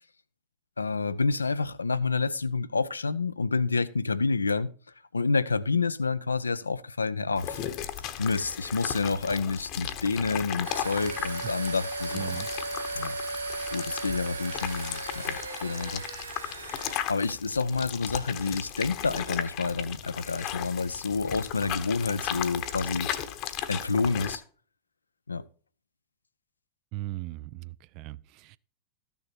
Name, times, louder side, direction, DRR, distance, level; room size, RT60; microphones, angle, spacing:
voice 1, 0.8-4.7 5.1-7.6 8.2-12.4 13.0-13.2 13.7-16.0 17.1-23.1 23.7-24.4 25.3-25.5, left 4 dB, 75° left, 0.5 m, -28 dB
sound 1, 7.4-24.4, left 11 dB, 40° left, 1.0 m, -36 dB
sound 2, 10.6-17.0, right 3 dB, 75° right, 0.8 m, -36 dB
voice 2, 12.1-12.5 26.9-28.6, right 17 dB, 40° right, 0.4 m, -38 dB
13.5 x 6.8 x 4.4 m
figure-of-eight pair, 90°, 0 cm